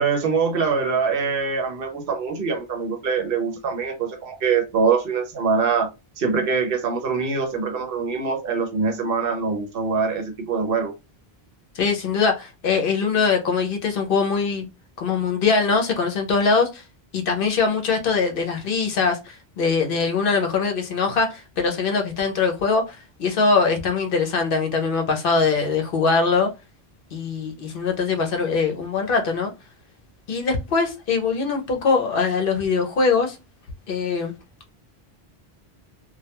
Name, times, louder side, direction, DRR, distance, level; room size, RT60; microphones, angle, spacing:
voice 1, 0.0-5.9 6.2-10.9, right 5 dB, 65° right, 0.8 m, -23 dB
voice 2, 11.7-14.7 15.0-16.8 17.1-26.5 27.1-29.5 30.3-33.4 33.9-34.3, left 4 dB, 65° left, 0.7 m, -22 dB
2.2 x 2.2 x 2.8 m
omnidirectional pair, 1.1 m